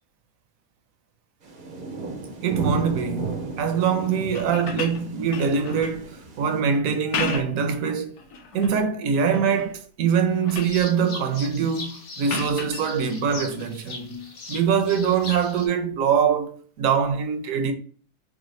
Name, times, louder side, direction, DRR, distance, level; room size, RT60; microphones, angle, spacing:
sound 1, 1.4-6.6, right 4 dB, 50° right, 0.6 m, -34 dB
voice 1, 2.4-8.2 8.5-17.7, right 6 dB, 70° right, 1.0 m, -23 dB
sound 2, 4.2-6.0 6.9-7.7 8.2-8.8 9.3-9.8 10.1-10.8 12.3-12.8 14.6-14.7, left 4 dB, 90° left, 1.3 m, -33 dB
sound 3, 10.5-15.7, left 3 dB, 50° left, 0.8 m, -39 dB
4.8 x 2.1 x 3.1 m
omnidirectional pair, 1.6 m